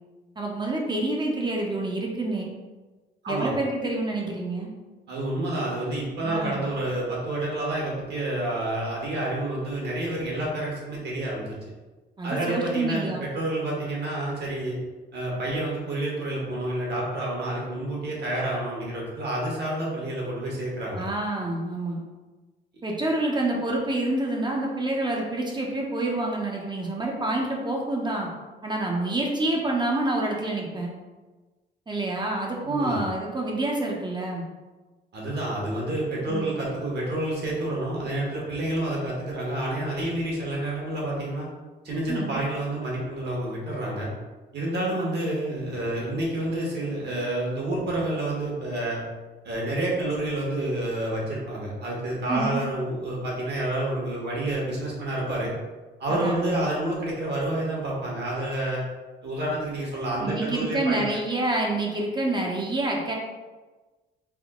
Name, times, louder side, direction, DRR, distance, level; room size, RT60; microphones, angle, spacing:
voice 1, 0.4-2.5 3.3-4.7 6.2-6.6 12.2-13.2 20.9-22.0 22.8-28.3 28.6-30.9 31.9-34.4 36.3-36.6 42.1-42.4 52.3-52.6 56.1-56.5 60.2-63.1, right 2 dB, 20° right, -1 dB, 0.7 m, -27 dB
voice 2, 5.1-11.5 12.2-14.8 15.1-21.0 32.6-33.0 35.1-41.5 41.8-44.1 44.5-49.0 49.4-55.5 56.0-58.8 59.2-61.2, right 1 dB, 55° right, -4 dB, 1.3 m, -29 dB
3.5 x 2.2 x 3.6 m, 1.2 s
cardioid pair, 90°, 20 cm